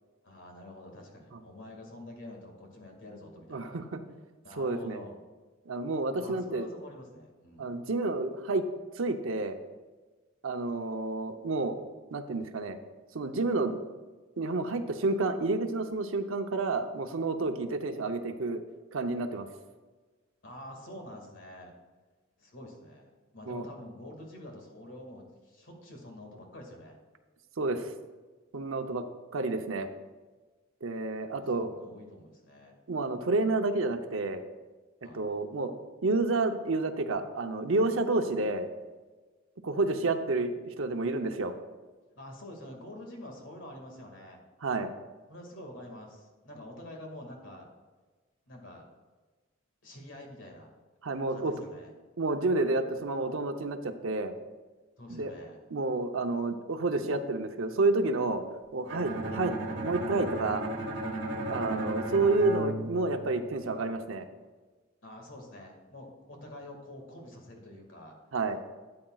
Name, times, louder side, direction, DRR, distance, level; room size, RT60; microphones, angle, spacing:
voice 1, 0.2-3.8 4.4-5.2 6.2-7.7 20.4-21.7 22.4-27.0 31.3-32.8 35.0-35.2 42.2-44.4 45.3-47.7 48.5-48.9 49.8-50.7 51.3-51.9 55.0-55.6 61.3-62.0 65.0-68.2, left 1 dB, 65° left, 2 dB, 2.1 m, -47 dB
voice 2, 3.5-4.0 4.6-5.0 5.7-6.7 7.6-8.6 9.0-9.6 10.4-11.8 12.1-12.8 13.1-13.8 14.4-18.6 18.9-19.5 23.5-23.7 27.6-27.9 28.5-29.0 29.3-29.9 30.8-31.7 32.9-34.4 35.1-35.7 36.0-38.7 39.6-41.5 44.6-44.9 51.0-51.5 52.2-54.3 55.1-55.3 55.7-58.4 58.7-60.7 61.5-64.3 68.3-68.6, right 3 dB, 80° right, 7 dB, 0.8 m, -30 dB
Bowed string instrument, 58.9-63.8, right 1 dB, 60° right, 1.5 m, -35 dB
13.0 x 8.7 x 2.4 m, 1.3 s
head